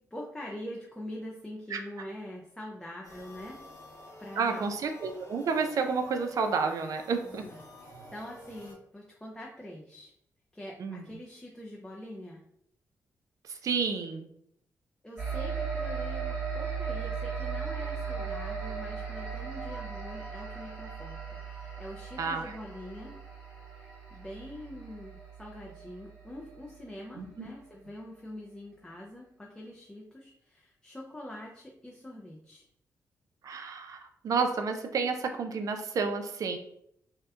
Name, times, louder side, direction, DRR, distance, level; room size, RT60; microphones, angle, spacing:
voice 1, 0.1-3.6 4.2-4.7 7.2-7.6 8.1-10.1 10.5-12.4 15.0-23.1 24.1-32.6, left 1 dB, 10° left, -2 dB, 0.4 m, -44 dB
sound 1, 3.0-8.7, left 1 dB, 90° left, 1.0 m, -50 dB
voice 2, 4.4-7.4 10.8-11.1 13.5-14.3 22.2-22.6 27.2-27.5 33.4-36.6, right 5 dB, 60° right, 5 dB, 0.3 m, -30 dB
sound 2, 15.2-27.0, right 6 dB, 20° right, 1.1 m, -37 dB
2.7 x 2.1 x 2.3 m, 0.72 s
cardioid pair, 80°, 6 cm